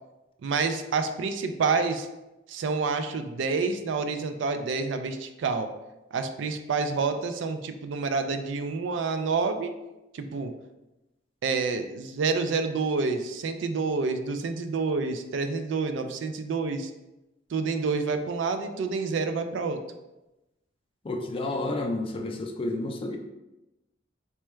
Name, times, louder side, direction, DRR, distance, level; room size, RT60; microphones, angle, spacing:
voice 1, 0.4-2.1 2.5-5.7 6.1-9.7 10.1-10.5 11.4-16.9 17.5-19.8, right 4 dB, 70° right, 8 dB, 0.3 m, -28 dB
voice 2, 21.0-23.2, left 2 dB, 30° left, 3 dB, 0.4 m, -30 dB
4.4 x 2.2 x 3.1 m, 0.99 s
head